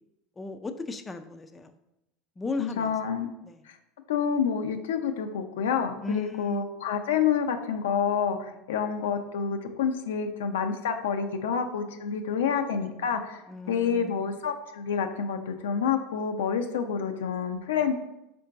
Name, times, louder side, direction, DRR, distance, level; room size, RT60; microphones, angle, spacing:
voice 1, 0.4-1.7 2.4-2.9 3.4-3.6 6.0-6.6 13.5-14.3, left 2 dB, 20° left, 8 dB, 0.4 m, -35 dB
voice 2, 2.6-3.3 3.7-3.8 4.1-17.9, left 7 dB, 80° left, 6 dB, 0.4 m, -28 dB
4.4 x 2.6 x 4.5 m, 0.90 s
hypercardioid pair, 90°, 0 cm